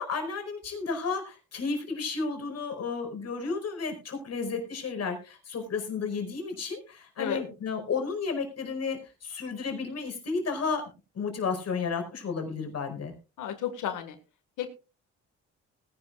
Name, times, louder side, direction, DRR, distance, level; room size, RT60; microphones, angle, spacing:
voice 1, 0.0-10.8 11.1-13.1, left 4 dB, 55° left, 5 dB, 5.1 m, -32 dB
voice 2, 13.4-14.2 14.6-14.7, left 9 dB, 85° left, 8 dB, 1.8 m, -32 dB
20.0 x 11.5 x 2.4 m, 0.31 s
cardioid pair, 90°, 30 cm